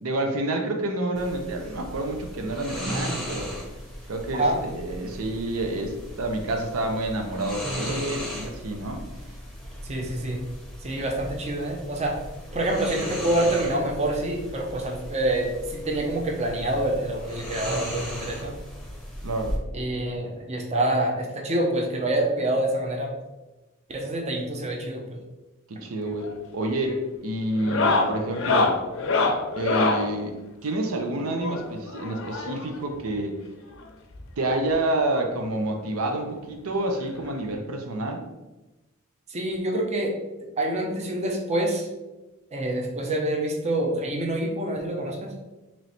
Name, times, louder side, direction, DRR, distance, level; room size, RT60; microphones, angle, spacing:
voice 1, 0.0-3.5 4.1-9.0 19.2-19.6 25.7-28.8 29.6-33.4 34.4-38.3, right 1 dB, 80° right, 3 dB, 0.6 m, -28 dB
sound 1, 1.1-19.6, equal, ahead, 0.8 m, -37 dB
voice 2, 9.8-10.4 10.8-12.2 12.5-18.5 19.7-23.1 23.9-25.2 39.3-40.1 40.6-41.9 42.5-45.3, right 1 dB, 30° right, 0 dB, 0.6 m, -26 dB
sound 2, 26.0-26.4 26.6-27.0 27.5-30.1 31.4-32.8 33.8-33.9 34.1-34.3 34.7-34.8 36.1-36.2 37.5-37.6, left 3 dB, 65° left, 0.6 m, -25 dB
3.1 x 3.1 x 4.0 m, 1.1 s
head